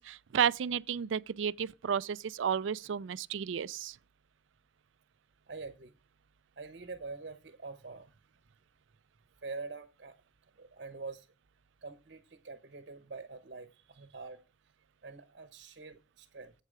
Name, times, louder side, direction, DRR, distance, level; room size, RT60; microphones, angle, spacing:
voice 1, 0.0-4.0, right 8 dB, 75° right, 0.4 m, -32 dB
voice 2, 5.5-5.9 6.6-8.1 9.4-10.2 10.6-11.3 11.8-14.4 15.0-16.5, right 4 dB, 55° right, 0.9 m, -45 dB
8.2 x 6.6 x 4.8 m
head